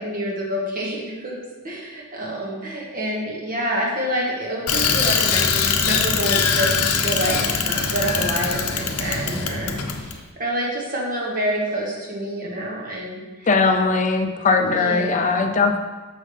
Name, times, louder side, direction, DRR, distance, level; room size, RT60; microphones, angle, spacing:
voice 1, 0.0-1.3 1.6-13.5 14.6-15.5, right 1 dB, 40° right, -3 dB, 1.4 m, -27 dB
Bicycle, 4.7-10.2, left 6 dB, 80° left, 0.6 m, -22 dB
voice 2, 13.5-15.8, left 4 dB, 35° left, 5 dB, 0.5 m, -19 dB
6.3 x 5.8 x 3.3 m, 1.2 s
head